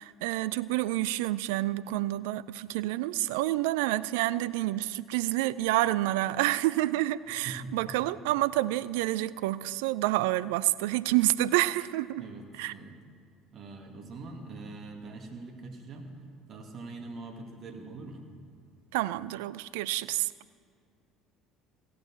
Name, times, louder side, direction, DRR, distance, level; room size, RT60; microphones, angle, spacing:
voice 1, 0.0-12.2 12.6-12.7 18.9-20.3, right 16 dB, 70° right, 17 dB, 0.3 m, -28 dB
voice 2, 7.5-7.9 12.2-13.0 13.5-16.1 16.5-18.2, right 3 dB, 45° right, 4 dB, 2.1 m, -43 dB
15.0 x 8.3 x 7.5 m, 2.3 s
figure-of-eight pair, 60°, 0 cm